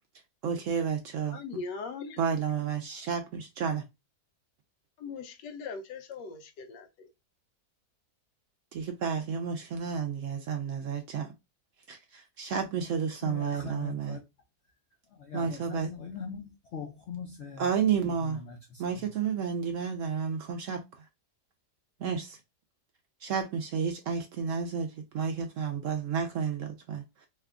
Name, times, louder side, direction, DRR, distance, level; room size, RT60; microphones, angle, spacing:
voice 1, 0.4-1.6 2.2-3.8 8.7-11.3 11.9-14.2 15.3-15.9 17.6-18.4 18.8-21.0 22.0-22.4 23.2-27.3, right 7 dB, 75° right, 0.7 m, -31 dB
voice 2, 1.3-2.2 5.0-7.1, left 4 dB, 90° left, 1.3 m, -40 dB
voice 3, 13.2-14.2 15.1-17.7 18.0-19.1, left 6 dB, 75° left, 0.6 m, -41 dB
3.2 x 2.2 x 3.5 m
omnidirectional pair, 1.8 m